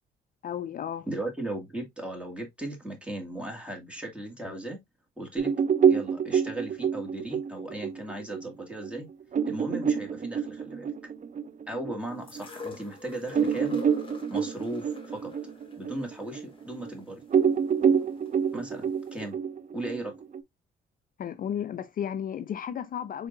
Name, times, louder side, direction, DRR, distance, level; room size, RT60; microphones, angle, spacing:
voice 1, 0.4-1.1 21.2-23.3, left 9 dB, 45° left, 0.4 m, -33 dB
voice 2, 1.1-4.8 5.2-5.5 5.9-9.1 9.5-10.9 11.7-13.8 14.3-15.3 15.8-17.2 18.5-19.4 19.7-20.1, right 1 dB, 5° right, 2.0 m, -37 dB
sound 1, 5.4-12.4 12.9-13.0 13.3-16.9 17.3-20.4, right 7 dB, 40° right, 0.6 m, -27 dB
sound 2, 12.3-18.3 19.2-19.3, left 3 dB, 25° left, 1.2 m, -44 dB
4.6 x 3.7 x 2.5 m
cardioid pair, 90°, 20 cm